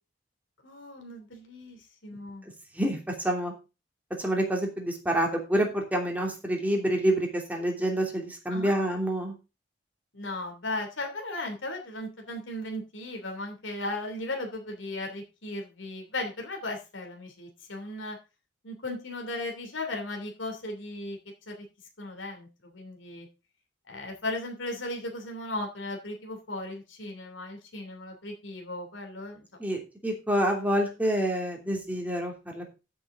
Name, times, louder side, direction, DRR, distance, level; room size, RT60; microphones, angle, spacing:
voice 1, 0.6-2.5 8.5-8.7 10.1-18.2 18.6-21.2 21.5-21.6 22.0-23.3 23.9-29.4, left 2 dB, 90° left, 3 dB, 3.0 m, -36 dB
voice 2, 4.2-9.3 29.6-32.8, right 1 dB, 10° right, 1 dB, 3.0 m, -27 dB
14.0 x 7.0 x 3.8 m, 0.29 s
head